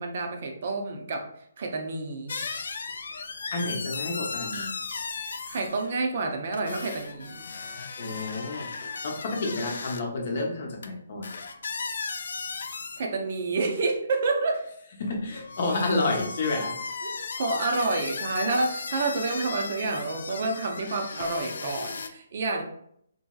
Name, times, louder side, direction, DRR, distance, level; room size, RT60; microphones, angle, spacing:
voice 1, 0.0-2.4 5.2-7.5 13.0-14.6 17.0-22.6, right 3 dB, 50° right, 3 dB, 0.5 m, -29 dB
sound 1, 2.3-5.9 6.5-10.0 10.8-10.9 11.2-13.1 13.6-14.0 15.0-22.1, left 4 dB, 65° left, 0.3 m, -36 dB
voice 2, 3.5-4.7 8.0-11.3 15.0-16.7, left 2 dB, 50° left, 1 dB, 0.7 m, -30 dB
2.9 x 2.7 x 2.3 m, 0.70 s
hypercardioid pair, 155°, 0 cm